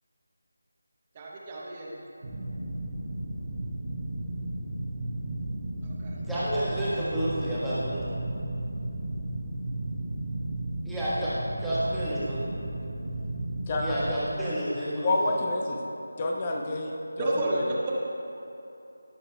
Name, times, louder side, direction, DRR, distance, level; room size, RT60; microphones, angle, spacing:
voice 1, 1.1-2.0 5.8-6.1 17.1-17.9, right 1 dB, 20° right, -4 dB, 0.9 m, -31 dB
sound 1, 2.2-14.1, right 1 dB, 40° right, 1.1 m, -34 dB
voice 2, 6.3-8.1 10.8-11.3 11.6-12.4 13.8-15.3, equal, ahead, -14 dB, 1.4 m, -30 dB
voice 3, 13.7-14.1 15.0-15.8 16.2-17.6, left 2 dB, 25° left, 0 dB, 0.8 m, -28 dB
17.5 x 6.9 x 2.3 m, 2.9 s
figure-of-eight pair, 160°, 0 cm